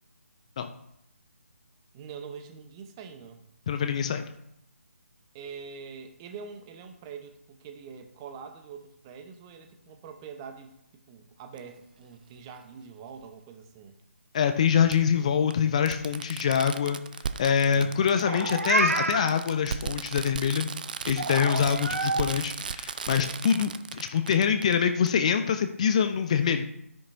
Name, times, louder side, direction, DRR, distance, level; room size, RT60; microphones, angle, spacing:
voice 1, 1.9-3.4 5.3-10.7 11.1-14.0 17.6-18.2 23.2-23.6, right 6 dB, 20° right, 7 dB, 0.9 m, -44 dB
voice 2, 3.7-4.3 14.3-17.0 17.4-20.7 21.1-26.6, left 7 dB, 25° left, 8 dB, 0.6 m, -25 dB
Fireworks, 11.6-11.7 13.2-13.3 14.9-15.0 15.5-15.6 15.9-24.7 25.1-25.2, right 6 dB, 35° right, 0.5 m, -36 dB
Meow, 18.2-19.3 21.2-22.2, right 2 dB, 70° right, 1.2 m, -27 dB
12.5 x 10.0 x 2.7 m, 0.78 s
figure-of-eight pair, 145°, 8 cm